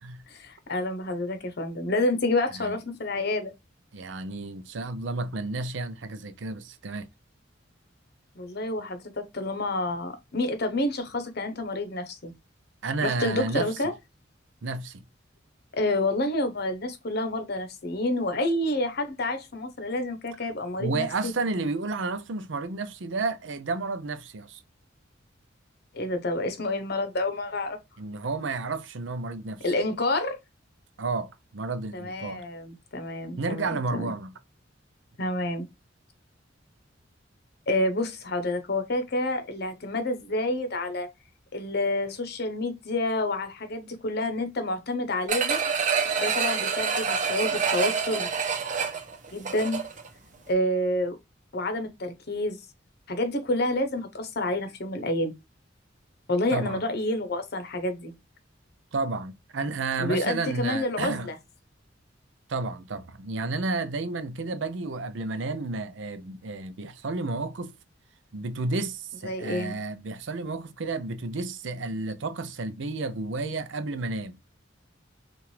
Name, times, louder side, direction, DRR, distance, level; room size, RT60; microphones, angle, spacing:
voice 1, 0.3-3.5 8.4-12.3 13.0-13.9 15.7-21.3 25.9-27.8 29.6-30.4 31.9-34.1 35.2-35.7 37.7-41.1 41.5-45.6 46.2-48.3 49.3-49.8 50.5-51.2 51.5-52.6 53.1-55.3 56.3-58.1 60.0-61.3 69.2-69.8, left 1 dB, 60° left, 1.0 m, -28 dB
voice 2, 3.9-7.1 12.8-13.7 14.6-15.0 20.8-24.6 28.0-29.6 31.0-32.4 33.4-34.3 56.5-56.8 58.9-61.3 62.5-67.7 68.3-74.4, right 3 dB, 70° right, 0.6 m, -31 dB
sound 1, 45.3-50.1 50.5-50.6, right 6 dB, 40° right, 0.9 m, -27 dB
5.8 x 2.5 x 3.3 m
head